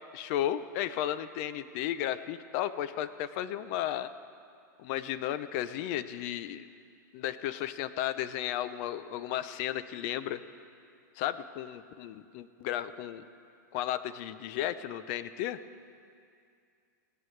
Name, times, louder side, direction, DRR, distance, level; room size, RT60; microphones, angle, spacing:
voice 1, 0.1-4.1 4.8-6.7 7.1-10.4 11.2-13.2 13.7-15.6, left 12 dB, 45° left, 14 dB, 0.6 m, -34 dB
21.5 x 17.0 x 3.3 m, 2.4 s
supercardioid pair, 140°, 10 cm